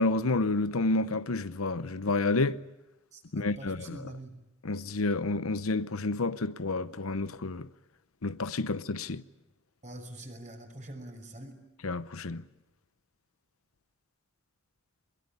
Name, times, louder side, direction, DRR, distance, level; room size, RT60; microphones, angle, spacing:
voice 1, 0.0-2.6 3.3-4.0 4.6-7.7 8.2-9.2 11.8-12.4, left 3 dB, 85° left, 0.9 m, -29 dB
voice 2, 3.1-4.4 9.8-11.6, right 1 dB, 35° right, 5.7 m, -44 dB
22.5 x 22.0 x 9.7 m
head